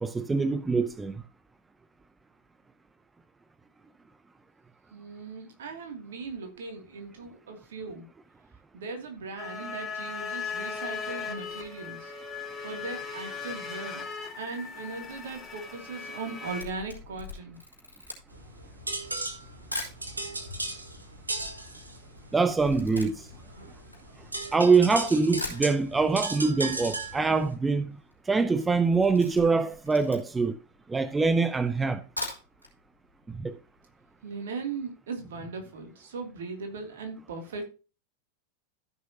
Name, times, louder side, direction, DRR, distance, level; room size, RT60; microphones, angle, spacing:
voice 1, 0.0-1.1 22.3-23.3 24.5-28.0 28.3-30.6 30.9-32.0 33.3-33.5, right 4 dB, 10° right, 0.6 m, -24 dB
voice 2, 4.9-8.1 8.7-12.1 12.6-14.1 14.4-17.6 34.2-37.7, right 4 dB, 60° right, 2.7 m, -38 dB
sound 1, 9.4-16.6, left 5 dB, 20° left, 2.4 m, -38 dB
Camera, 16.2-20.0 20.7-20.8 21.0-24.7 25.1-25.2 25.4-26.2 26.5-26.6 26.9-27.0 27.2-27.6 27.9-28.2 28.5-30.5 31.0-31.1 31.9-32.7 33.1-33.2 33.5-33.6, left 1 dB, 90° left, 4.4 m, -40 dB
sound 2, 18.3-27.5, right 2 dB, 80° right, 1.8 m, -37 dB
15.0 x 6.4 x 2.9 m
figure-of-eight pair, 90°, 0 cm